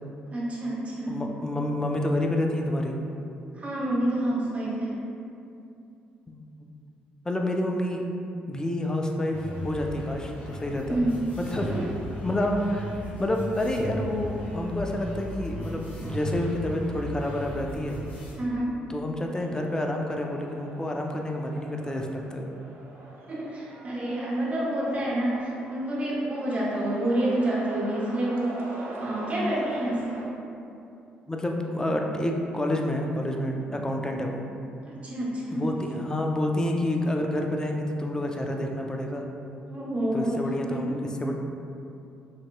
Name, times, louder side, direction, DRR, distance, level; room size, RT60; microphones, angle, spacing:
voice 1, 0.3-1.2 3.5-5.0 10.8-11.2 11.6-11.9 18.3-18.7 23.3-28.6 29.0-30.2 34.8-35.7 39.7-41.0, right 1 dB, 30° right, -7 dB, 1.3 m, -28 dB
voice 2, 1.1-3.0 6.3-6.4 7.2-8.1 8.5-9.4 9.6-11.0 11.4-11.7 12.2-12.9 13.2-18.0 18.9-22.5 31.3-34.4 35.5-39.3 40.1-41.3, left 1 dB, 15° left, 2 dB, 0.5 m, -28 dB
sound 1, 9.3-18.4, equal, 40° left, 1.0 m, -36 dB
sound 2, 19.3-30.2, right 2 dB, 60° right, 0.7 m, -43 dB
5.4 x 2.9 x 2.2 m, 2.7 s
hypercardioid pair, 50°, 4 cm